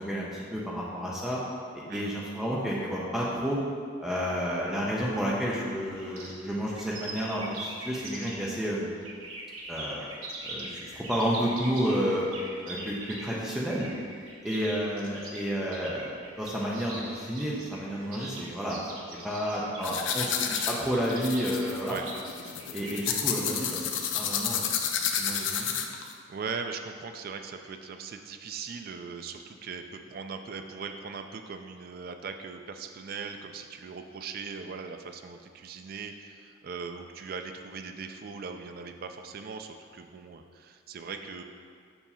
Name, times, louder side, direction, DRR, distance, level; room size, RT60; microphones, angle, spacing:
voice 1, 0.0-1.4 1.7-3.6 4.0-8.9 9.7-10.1 10.4-12.2 12.6-13.9 14.4-18.8 19.1-20.3 20.7-22.0 22.7-23.9 24.1-24.6 25.2-25.7, equal, ahead, -6 dB, 0.6 m, -31 dB
voice 2, 1.9-2.2 8.2-8.4 14.5-14.7 21.9-22.1 26.3-41.4, right 5 dB, 45° right, 6 dB, 0.3 m, -40 dB
sound 1, 5.8-8.6 9.0-23.0, right 2 dB, 90° right, 1.0 m, -42 dB
sound 2, 19.8-26.1, left 7 dB, 65° left, 0.5 m, -30 dB
7.0 x 2.7 x 5.5 m, 2.2 s
head